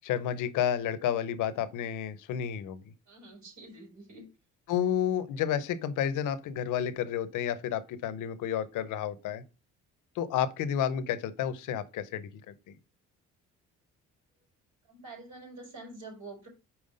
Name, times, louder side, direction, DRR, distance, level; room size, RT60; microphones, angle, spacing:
voice 1, 0.0-2.8 4.7-9.4 10.2-12.3, left 9 dB, 85° left, 0.8 m, -31 dB
voice 2, 3.1-4.3 14.9-16.5, right 2 dB, 70° right, 4.4 m, -47 dB
5.6 x 4.7 x 5.1 m
cardioid pair, 90°, 30 cm